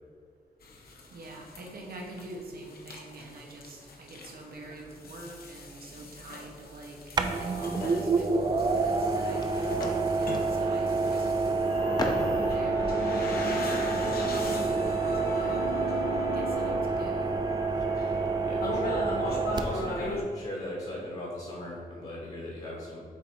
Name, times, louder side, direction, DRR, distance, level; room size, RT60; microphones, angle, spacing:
sound 1, 0.6-20.2, left 2 dB, 75° left, 0.9 m, -38 dB
voice 1, 1.1-11.3 12.2-12.9 13.6-15.9 16.3-17.3, right 2 dB, 75° right, 0 dB, 1.1 m, -45 dB
sound 2, 4.4-5.1 5.5-5.8 6.2-8.6 9.1-11.5 11.8-12.9 13.8-14.1 15.2-15.4 16.2-16.5 17.1-17.2 17.5-18.5, left 1 dB, 25° left, 0.7 m, -40 dB
sound 3, 4.7-4.8 7.2-20.1, right 4 dB, 30° right, 0.4 m, -28 dB
voice 2, 18.4-23.0, left 1 dB, 45° left, -4 dB, 1.3 m, -38 dB
7.6 x 2.8 x 4.7 m, 2.1 s
wide cardioid pair, 145°, 16 cm